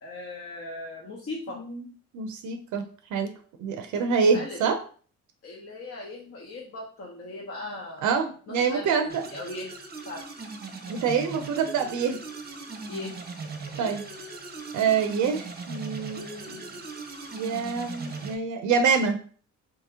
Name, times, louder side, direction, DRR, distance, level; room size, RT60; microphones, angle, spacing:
voice 1, 0.0-1.6 4.3-4.6 5.4-8.2 8.5-9.7 10.1-10.3 12.9-13.2 13.7-14.0, left 2 dB, 50° left, -3 dB, 0.9 m, -38 dB
voice 2, 2.1-2.8 3.1-3.3 3.6-4.8 8.0-9.2 10.9-12.2 13.8-14.0 14.7-16.7 17.3-19.2, right 6 dB, 80° right, 7 dB, 0.5 m, -26 dB
sound 1, 9.1-18.3, right 4 dB, 30° right, 0.7 m, -39 dB
2.9 x 2.8 x 3.5 m, 0.43 s
cardioid pair, 90°, 30 cm